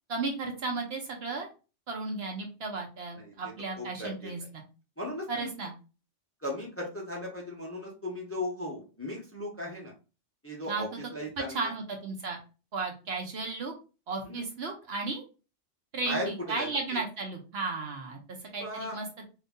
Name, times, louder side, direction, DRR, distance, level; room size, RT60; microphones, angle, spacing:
voice 1, 0.1-1.5 1.9-4.6 5.3-5.7 10.7-10.8 11.5-12.4 12.7-13.7 14.1-15.2 15.9-18.2 18.5-19.1, right 3 dB, 60° right, 2 dB, 0.9 m, -34 dB
voice 2, 3.8-4.3 5.0-5.5 6.4-9.9 10.4-11.7 14.3-14.4 16.1-16.7 18.5-19.0, left 1 dB, 15° left, -2 dB, 0.7 m, -37 dB
2.7 x 2.6 x 3.5 m, 0.32 s
omnidirectional pair, 1.3 m